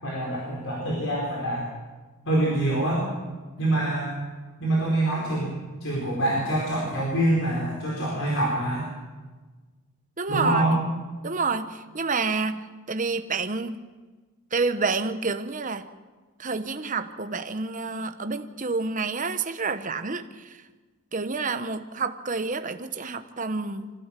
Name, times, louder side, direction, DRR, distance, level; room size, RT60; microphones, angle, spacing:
voice 1, 0.0-1.7 2.2-3.0 3.6-4.1 4.6-8.9 10.3-10.8, right 1 dB, 60° left, -4 dB, 5.0 m, -25 dB
voice 2, 10.2-10.6 11.2-13.8 14.5-15.8 16.4-20.5 21.1-23.9, right 4 dB, 35° right, 9 dB, 1.0 m, -29 dB
24.5 x 15.5 x 7.6 m, 1.3 s
head